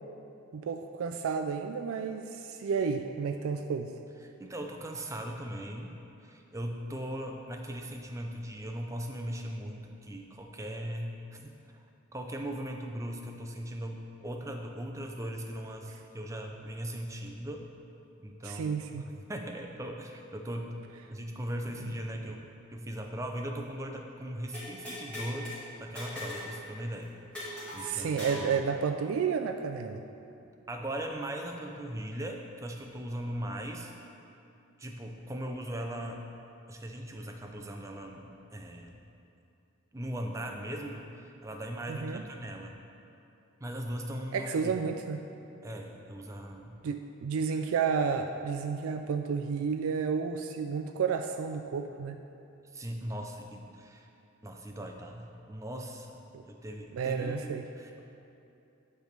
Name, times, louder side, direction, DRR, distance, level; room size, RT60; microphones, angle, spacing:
voice 1, 0.5-3.9 18.4-19.1 21.8-21.9 27.8-30.0 41.9-42.2 44.3-45.2 46.8-52.2 56.3-56.4 56.9-57.7, right 6 dB, 85° right, 6 dB, 0.3 m, -31 dB
voice 2, 4.2-5.9 6.2-11.8 12.1-17.7 18.2-19.0 19.3-20.7 21.1-22.5 22.7-25.5 25.8-27.1 27.7-28.7 30.7-33.9 34.8-36.2 36.7-39.0 39.9-42.8 43.6-44.7 45.6-46.8 52.7-54.1 54.4-56.2 56.4-58.0, right 1 dB, 15° right, 2 dB, 0.4 m, -39 dB
sound 1, 24.5-25.6 26.0-26.5 26.8-26.9 27.3-28.5, left 1 dB, 5° left, 1.9 m, -40 dB
9.2 x 3.4 x 6.5 m, 2.7 s
head